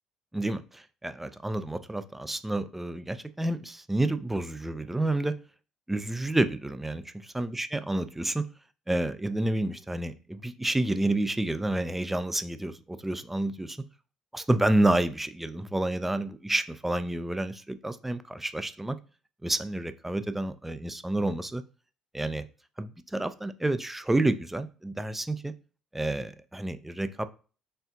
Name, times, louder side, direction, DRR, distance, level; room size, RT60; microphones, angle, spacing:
voice 1, 0.3-5.3 5.9-8.5 8.9-13.8 14.3-19.0 19.4-21.6 22.1-22.5 22.8-25.5 25.9-27.3, right 1 dB, 10° right, 12 dB, 0.4 m, -29 dB
4.3 x 3.3 x 2.7 m, 0.37 s
figure-of-eight pair, 50°, 2 cm